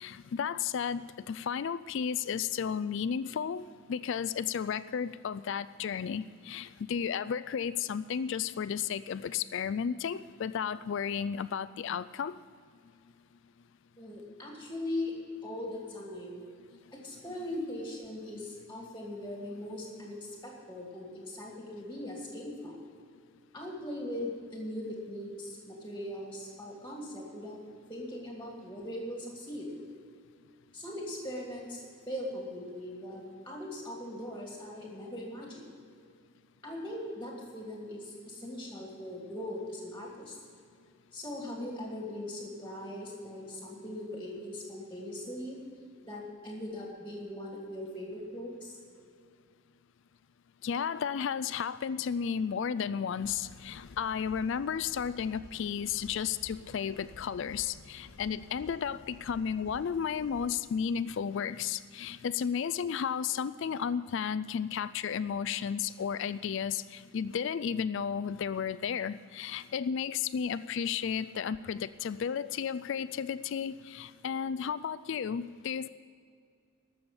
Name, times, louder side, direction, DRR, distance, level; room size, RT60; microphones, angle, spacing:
voice 1, 0.0-12.4 50.6-75.9, left 7 dB, 55° left, 16 dB, 0.3 m, -33 dB
voice 2, 14.0-15.1 15.4-16.4 16.9-22.8 23.5-27.6 27.9-29.7 30.7-35.6 36.6-40.4 41.1-45.6 46.1-48.8, left 1 dB, 10° left, -2 dB, 2.3 m, -40 dB
sound 1, 53.2-60.6, left 2 dB, 85° left, 0.9 m, -53 dB
13.0 x 7.1 x 9.6 m, 2.3 s
head